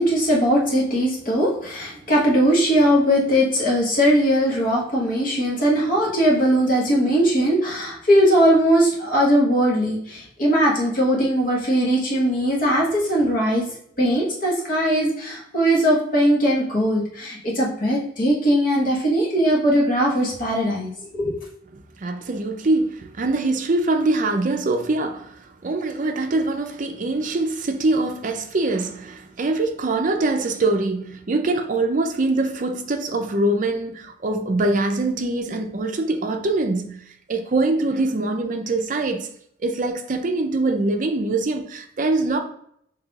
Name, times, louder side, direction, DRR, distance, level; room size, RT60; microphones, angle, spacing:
voice 1, 0.0-13.7 14.0-21.3, equal, 45° left, 1.2 m, -20 dB
voice 2, 21.7-39.3 39.6-42.4, right 2 dB, 45° right, 0.5 m, -23 dB
5.5 x 3.2 x 2.4 m
head